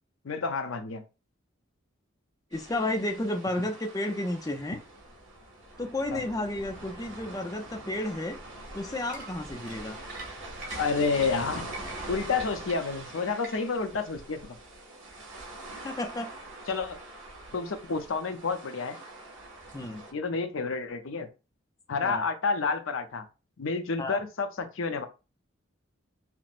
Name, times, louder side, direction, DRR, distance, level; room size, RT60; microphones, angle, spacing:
voice 1, 0.2-1.0 3.6-3.7 6.1-6.2 10.8-11.7 12.1-14.6 16.7-17.0 17.5-19.0 20.1-21.3 21.9-23.2 23.6-25.1, left 4 dB, 80° left, 0.6 m, -30 dB
voice 2, 2.5-4.8 5.8-8.4 8.7-10.0 15.8-16.3 19.7-20.0 22.0-22.2 24.0-24.2, left 1 dB, 20° left, 0.4 m, -32 dB
sound 1, 2.5-20.1, right 2 dB, 80° right, 1.7 m, -44 dB
sound 2, 9.1-13.9, right 2 dB, 60° right, 1.5 m, -45 dB
5.8 x 2.1 x 2.5 m
head